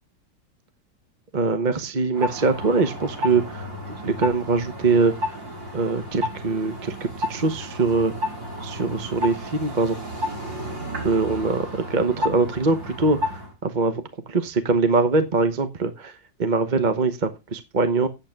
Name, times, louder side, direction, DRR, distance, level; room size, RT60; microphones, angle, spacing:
voice 1, 1.3-5.4 5.7-8.1 8.6-10.0 11.0-14.0 14.3-18.1, right 3 dB, 30° right, 9 dB, 0.9 m, -23 dB
sound 1, 2.1-13.5, left 1 dB, 75° right, 5.6 m, -32 dB
8.8 x 7.9 x 5.9 m, 0.25 s
omnidirectional pair, 2.0 m